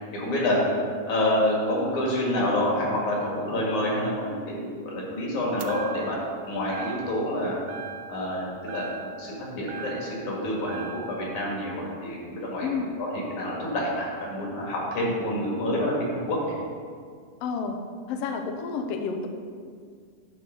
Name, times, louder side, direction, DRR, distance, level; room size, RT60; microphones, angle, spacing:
voice 1, 0.1-0.6 1.1-6.2 6.5-7.6 8.1-8.9 9.2-12.7 13.0-16.5, left 1 dB, 65° left, -3 dB, 3.2 m, -28 dB
sound 1, 5.6-6.3 6.7-7.3 7.7-8.4 8.7-10.3 10.7-11.3, right 7 dB, 85° right, 2.1 m, -40 dB
voice 2, 12.6-12.9 17.4-17.8 18.1-19.3, left 5 dB, 85° left, 5 dB, 1.4 m, -30 dB
9.4 x 4.8 x 6.2 m, 2.1 s
omnidirectional pair, 3.6 m